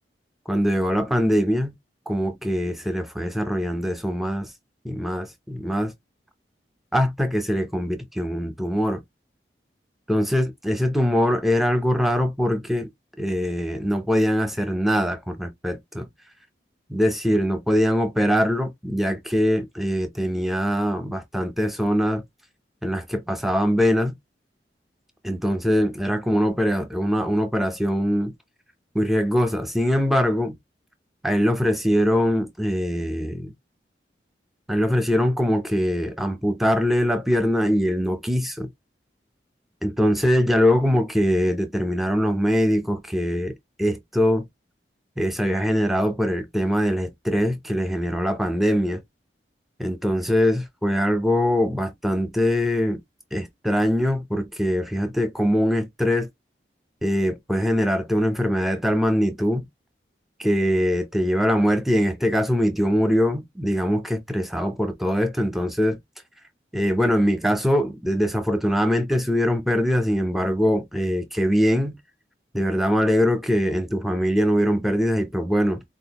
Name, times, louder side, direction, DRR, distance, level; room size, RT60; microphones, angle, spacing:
voice 1, 0.5-1.7 2.1-4.5 4.8-5.9 6.9-9.0 10.1-12.9 13.2-16.1 16.9-22.2 22.8-24.2 25.2-28.3 28.9-30.6 31.2-33.5 34.7-38.7 39.8-43.5 43.8-44.4 45.2-49.0 49.8-53.0 53.3-56.3 57.0-59.7 60.4-66.0 66.7-72.0 72.5-75.8, equal, ahead, 0.6 m, -22 dB
4.2 x 2.4 x 2.8 m
head